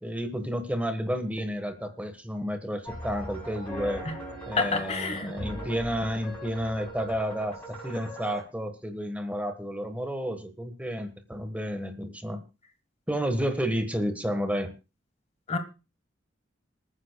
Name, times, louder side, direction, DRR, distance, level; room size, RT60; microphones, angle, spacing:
voice 1, 0.0-4.0 4.5-12.4 13.1-14.7, equal, 10° right, 1.4 m, -31 dB
sound 1, 2.8-8.4, equal, 10° left, 7.3 m, -39 dB
voice 2, 4.6-5.3 15.5-15.6, left 4 dB, 35° left, 1.3 m, -28 dB
27.0 x 9.8 x 2.3 m
head